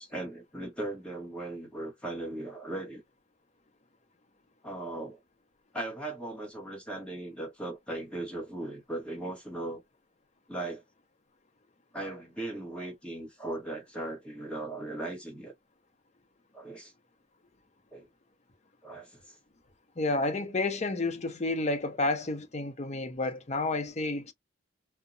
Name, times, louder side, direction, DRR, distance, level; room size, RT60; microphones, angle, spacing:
voice 1, 0.0-3.0 4.6-5.2 5.7-9.8 10.5-10.8 11.9-15.5 16.5-16.9 17.9-18.1 18.8-19.3, right 2 dB, 5° left, 1.2 m, -38 dB
voice 2, 20.0-24.3, left 2 dB, 35° left, 0.6 m, -30 dB
2.8 x 2.1 x 2.5 m
head